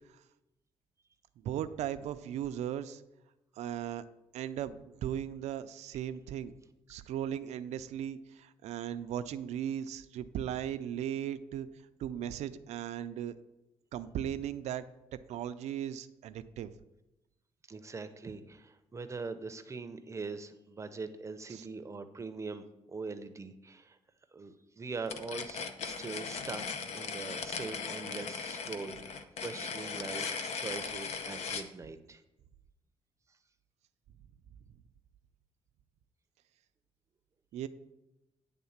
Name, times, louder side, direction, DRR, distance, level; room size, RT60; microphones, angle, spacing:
voice 1, 1.4-3.0 3.6-4.0 4.3-6.5 6.9-11.7 12.0-13.3 13.9-14.8 15.3-16.7 21.5-21.6 30.4-30.5 37.5-37.7, right 10 dB, 90° right, 11 dB, 0.4 m, -37 dB
voice 2, 17.7-24.0 24.3-26.6 26.9-32.2, right 4 dB, 25° right, 10 dB, 0.6 m, -42 dB
sound 1, 25.1-31.7, left 5 dB, 70° left, 0.7 m, -38 dB
9.5 x 3.6 x 7.1 m, 0.96 s
cardioid pair, 115°, 11 cm